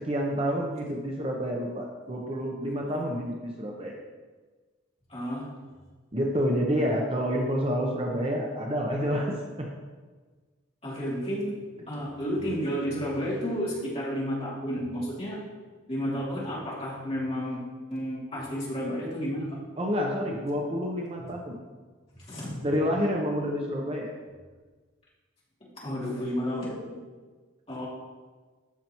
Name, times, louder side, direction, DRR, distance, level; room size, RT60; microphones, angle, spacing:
voice 1, 0.0-4.0 6.1-9.7 19.8-21.6 22.6-24.1, equal, 30° right, 0 dB, 0.8 m, -28 dB
voice 2, 5.1-5.5 10.8-11.5 11.9-15.4 15.9-19.4 21.2-21.3 22.1-22.7 25.8-27.0 27.7-27.9, equal, 30° left, -7 dB, 2.7 m, -31 dB
13.0 x 5.7 x 3.0 m, 1.4 s
head